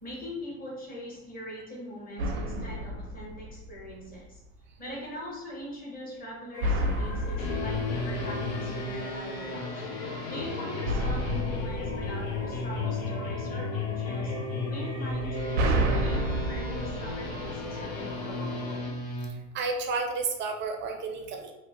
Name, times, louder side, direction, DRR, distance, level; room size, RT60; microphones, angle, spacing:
voice 1, 0.0-4.4 4.8-9.8 10.3-14.3 14.7-18.6 21.2-21.3, equal, 20° left, -4 dB, 1.0 m, -42 dB
sound 1, 2.2-4.1 6.6-9.0 10.9-13.1 15.1-18.1, right 1 dB, 85° right, 0.6 m, -31 dB
sound 2, 6.5-18.8, left 4 dB, 50° left, 0.6 m, -43 dB
sound 3, 7.4-19.3, left 2 dB, 80° left, 0.9 m, -34 dB
voice 2, 19.5-21.5, right 4 dB, 30° right, 3 dB, 0.4 m, -31 dB
2.8 x 2.1 x 3.1 m, 0.90 s
supercardioid pair, 110°, 41 cm